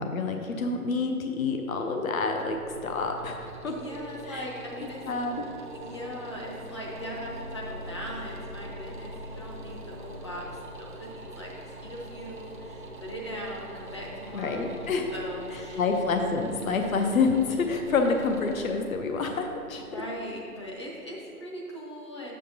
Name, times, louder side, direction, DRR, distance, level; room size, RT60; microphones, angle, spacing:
voice 1, 0.0-3.7 4.3-4.4 5.0-5.4 14.3-15.1 15.8-20.0, left 4 dB, 65° left, 4 dB, 0.8 m, -28 dB
sound 1, 2.1-21.0, equal, 35° right, 0.5 m, -43 dB
voice 2, 3.7-5.0 5.7-10.4 10.8-14.8 15.1-15.9 19.7-22.3, equal, 20° left, -4 dB, 0.7 m, -40 dB
9.0 x 7.4 x 2.7 m, 2.5 s
figure-of-eight pair, 155°, 45 cm